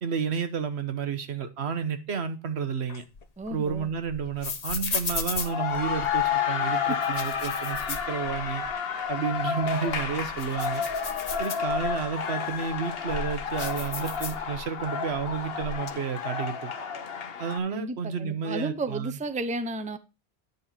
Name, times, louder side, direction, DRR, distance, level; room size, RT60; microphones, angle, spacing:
voice 1, 0.0-3.0 3.5-8.6 9.1-10.8 11.4-16.7 17.4-19.2, right 6 dB, 90° right, 1.3 m, -31 dB
sound 1, 2.9-6.3 6.9-8.7 9.1-9.2 9.7-12.1 12.7-14.8 15.1-15.9, left 4 dB, 40° left, 0.8 m, -36 dB
voice 2, 3.4-3.9 17.7-20.0, right 2 dB, 10° right, 0.5 m, -33 dB
sound 2, 5.2-17.6, left 7 dB, 70° left, 1.1 m, -31 dB
9.7 x 5.3 x 4.3 m
omnidirectional pair, 1.1 m